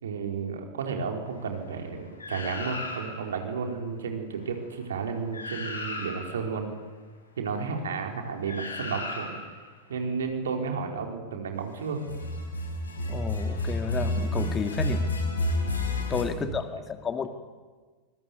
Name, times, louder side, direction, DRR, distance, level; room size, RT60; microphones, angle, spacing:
voice 1, 0.0-6.7 7.4-9.3 9.9-12.0 16.3-16.6, right 5 dB, 65° right, 3 dB, 4.5 m, -32 dB
sound 1, 2.2-3.4 5.0-5.1 5.3-6.5 8.5-9.6 12.0-16.2, left 1 dB, 75° left, 5.4 m, -31 dB
voice 2, 13.1-15.0 16.1-17.3, left 5 dB, 20° left, 8 dB, 2.2 m, -31 dB
25.0 x 22.5 x 9.5 m, 1.4 s
figure-of-eight pair, 90°, 0 cm